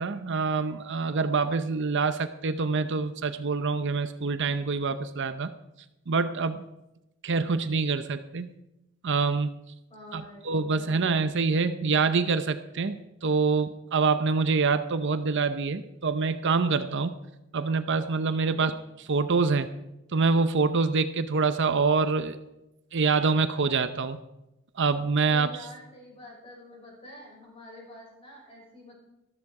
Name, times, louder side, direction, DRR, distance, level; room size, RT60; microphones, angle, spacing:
voice 1, 0.0-5.5 6.1-6.6 7.2-8.5 9.0-9.5 10.1-17.2 17.5-18.7 19.0-19.7 20.1-22.4 22.9-24.2 24.8-25.5, right 4 dB, 55° right, 11 dB, 0.7 m, -26 dB
voice 2, 9.9-11.1 18.4-18.7 25.2-28.9, left 1 dB, 25° left, -2 dB, 6.3 m, -47 dB
14.0 x 13.5 x 4.8 m, 0.92 s
head